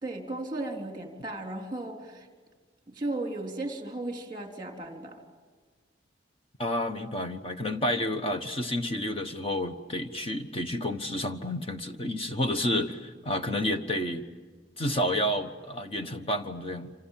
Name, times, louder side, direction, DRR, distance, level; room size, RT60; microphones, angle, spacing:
voice 1, 0.0-2.3 2.9-5.2, right 2 dB, 20° right, 2 dB, 3.6 m, -35 dB
voice 2, 6.6-14.2 14.8-16.9, left 1 dB, 30° left, 6 dB, 1.2 m, -30 dB
27.5 x 27.5 x 7.5 m, 1.4 s
head